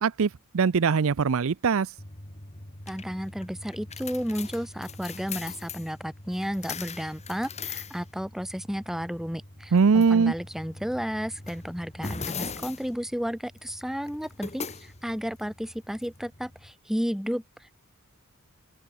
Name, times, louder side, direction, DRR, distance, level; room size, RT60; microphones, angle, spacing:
voice 1, 0.0-1.9 9.7-10.3, right 5 dB, 65° right, 0.5 m, -22 dB
sound 1, 2.0-16.7, left 4 dB, 30° left, 2.6 m, -41 dB
voice 2, 2.9-17.7, equal, ahead, 1.3 m, -33 dB
open air
head